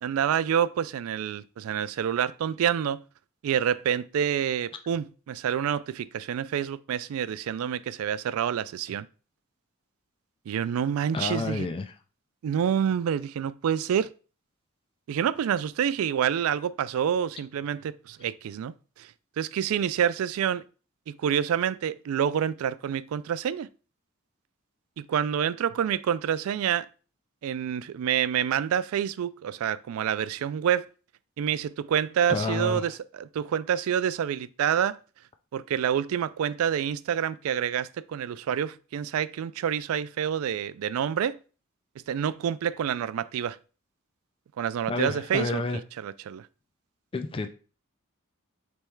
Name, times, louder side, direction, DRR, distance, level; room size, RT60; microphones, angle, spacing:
voice 1, 0.0-3.0 3.4-9.1 10.5-11.7 12.4-14.1 15.1-19.1 19.4-20.6 21.1-23.7 25.0-26.9 27.4-30.9 31.4-35.0 35.5-41.4 42.1-43.6 44.6-45.6 46.0-46.5, right 9 dB, 70° right, 0.3 m, -27 dB
voice 2, 11.1-11.9 32.3-32.9 44.9-45.8 47.1-47.5, left 3 dB, 25° left, 0.3 m, -30 dB
3.5 x 3.0 x 4.4 m
head